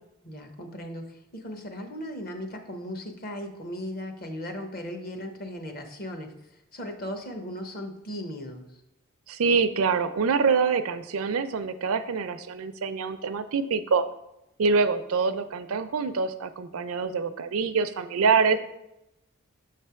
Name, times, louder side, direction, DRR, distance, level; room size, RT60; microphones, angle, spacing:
voice 1, 0.2-6.3 6.7-8.6, equal, 45° left, 5 dB, 0.9 m, -37 dB
voice 2, 9.3-14.0 14.6-18.6, right 5 dB, 80° right, 11 dB, 0.5 m, -25 dB
6.7 x 3.3 x 5.6 m, 0.88 s
head